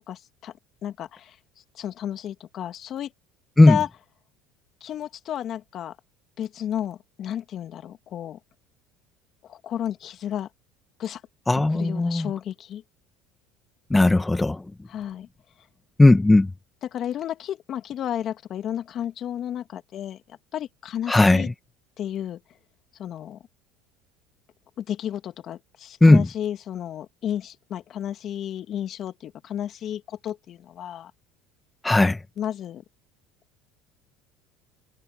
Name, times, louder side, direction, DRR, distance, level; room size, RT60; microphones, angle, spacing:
voice 1, 0.1-0.5 0.8-1.4 1.7-3.1 3.7-3.9 4.8-6.0 6.4-8.4 9.4-10.5 11.0-11.2 11.7-12.8 14.9-15.3 16.8-20.2 20.5-21.5 22.0-22.4 23.0-23.4 24.8-31.1 32.4-32.8, left 10 dB, 50° left, 2.2 m, -32 dB
voice 2, 11.5-12.3 13.9-14.6 16.0-16.5 21.1-21.5 26.0-26.3 31.8-32.2, left 2 dB, 10° left, 2.1 m, -16 dB
supercardioid pair, 85°, 0 cm